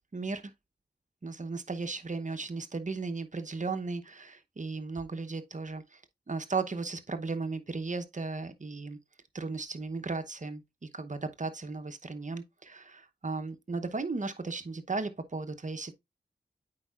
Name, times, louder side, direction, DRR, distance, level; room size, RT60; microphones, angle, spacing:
voice 1, 0.1-0.5 1.2-6.0 6.3-9.0 9.3-10.6 10.9-15.9, right 3 dB, 40° right, 0.8 m, -35 dB
8.6 x 4.6 x 2.4 m
cardioid pair, 40°, 19 cm